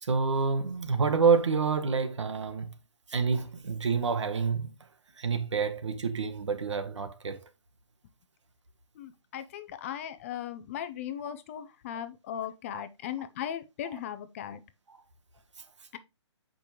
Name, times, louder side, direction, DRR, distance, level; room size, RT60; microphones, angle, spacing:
voice 1, 0.0-2.7 3.1-4.7 5.2-7.4 12.7-12.8 13.9-14.0, right 5 dB, 80° right, 1.2 m, -28 dB
voice 2, 8.9-14.6 15.9-16.0, left 10 dB, 30° left, 0.5 m, -38 dB
6.6 x 5.2 x 2.9 m
hypercardioid pair, 150°, 15 cm